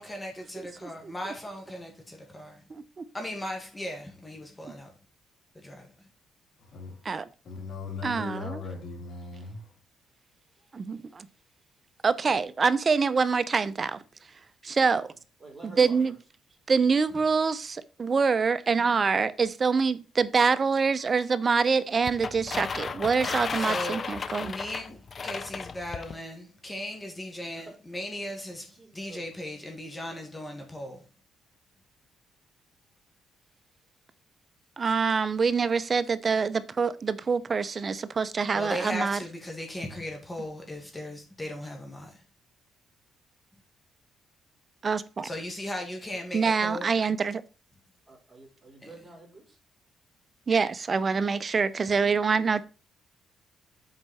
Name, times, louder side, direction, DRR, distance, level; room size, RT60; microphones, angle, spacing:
voice 1, 0.0-2.6 3.1-4.9 5.6-5.9 23.6-24.1 24.4-28.7 28.9-31.0 38.5-42.2 45.2-46.9 48.8-48.9, left 1 dB, 15° left, 1.9 m, -37 dB
voice 2, 2.7-3.0 7.0-7.3 8.0-8.6 10.7-11.3 12.0-14.0 14.6-15.0 15.8-16.2 16.7-24.5 34.8-39.2 44.8-45.3 46.3-47.4 50.5-52.6, right 5 dB, 35° right, 0.6 m, -25 dB
voice 3, 6.6-7.0 7.4-9.7, left 4 dB, 60° left, 3.9 m, -38 dB
voice 4, 15.1-16.2 27.5-27.8 28.7-29.3 46.5-46.7 48.1-49.6, right 2 dB, 10° right, 4.0 m, -49 dB
sound 1, 22.1-26.2, left 5 dB, 40° left, 0.6 m, -34 dB
7.9 x 4.6 x 4.2 m
cardioid pair, 90°, 0 cm